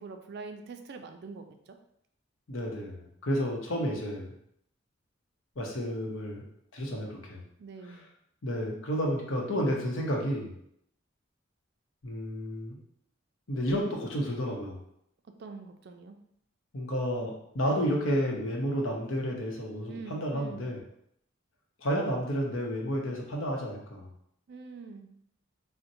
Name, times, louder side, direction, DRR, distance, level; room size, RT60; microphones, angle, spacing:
voice 1, 0.0-1.8 7.6-8.1 15.4-16.2 19.9-20.7 24.5-25.1, right 4 dB, 55° right, 6 dB, 0.3 m, -44 dB
voice 2, 2.5-4.3 5.6-6.4 6.7-7.4 7.8-8.0 8.4-10.5 12.0-12.8 13.5-14.8 16.7-20.8 21.8-24.1, equal, 75° left, -1 dB, 0.8 m, -31 dB
4.2 x 2.1 x 2.6 m, 0.73 s
head